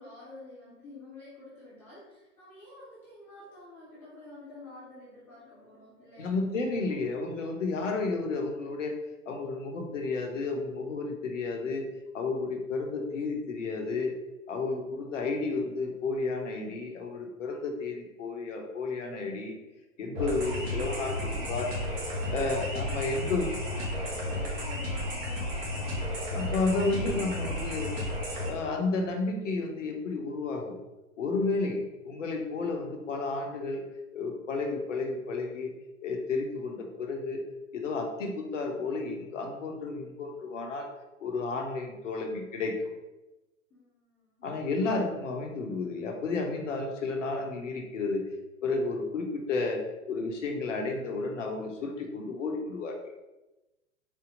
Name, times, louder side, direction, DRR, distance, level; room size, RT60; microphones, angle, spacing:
voice 1, 0.0-6.4 20.6-27.9 43.7-44.5, left 2 dB, 5° left, -9 dB, 0.3 m, -49 dB
voice 2, 6.2-9.0 9.3-11.9 12.1-14.1 14.5-19.6 20.0-21.7 22.3-23.5 26.3-27.9 28.5-30.7 31.2-33.8 34.1-35.7 36.0-37.4 37.7-40.9 41.2-42.8 44.4-48.2 48.6-49.8 50.1-53.0, left 3 dB, 65° left, 2 dB, 1.1 m, -32 dB
sound 1, 20.1-28.5, left 1 dB, 30° right, 1.3 m, -33 dB
4.2 x 2.8 x 3.8 m, 1.0 s
figure-of-eight pair, 110°, 41 cm